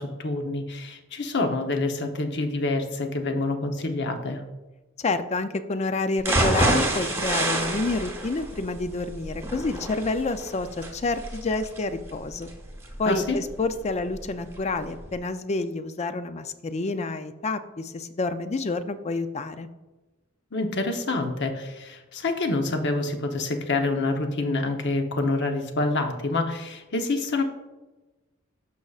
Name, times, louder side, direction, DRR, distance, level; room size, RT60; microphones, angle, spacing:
voice 1, 0.0-4.4 13.1-13.4 20.5-27.4, left 2 dB, 55° left, 5 dB, 0.8 m, -27 dB
voice 2, 5.0-12.5 13.0-19.7, left 3 dB, 30° left, 10 dB, 0.4 m, -28 dB
sound 1, 6.2-14.2 14.6-14.7 15.1-15.2, right 1 dB, 10° right, 1.0 m, -28 dB
12.5 x 5.4 x 2.4 m, 1.1 s
head